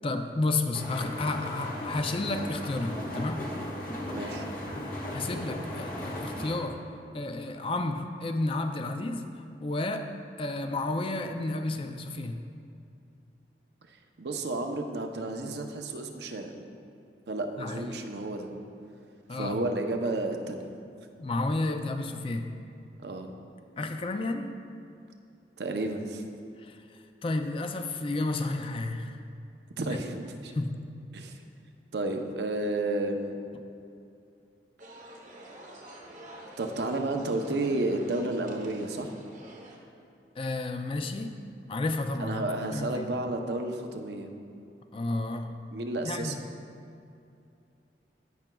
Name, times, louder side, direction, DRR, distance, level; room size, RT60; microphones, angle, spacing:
voice 1, 0.0-3.5 5.1-6.8 7.1-10.1 10.4-12.5 17.6-18.0 19.3-19.6 21.2-22.5 23.8-24.5 26.6-26.8 27.2-29.2 29.9-30.0 30.5-30.9 40.4-41.4 41.7-43.1 44.9-45.6 46.0-46.5, left 2 dB, 30° left, 7 dB, 0.4 m, -31 dB
sound 1, 0.7-6.6, left 1 dB, 50° left, 1.4 m, -36 dB
voice 2, 4.1-4.5 14.2-16.6 17.3-18.5 19.3-20.7 23.0-23.3 25.6-26.2 29.8-30.5 31.1-31.4 31.9-33.4 36.6-39.1 42.2-44.3 45.7-46.4, right 2 dB, 70° right, 4 dB, 0.7 m, -31 dB
sound 2, 34.8-39.8, right 1 dB, 45° right, 1.0 m, -48 dB
16.5 x 5.9 x 2.3 m, 2.5 s
head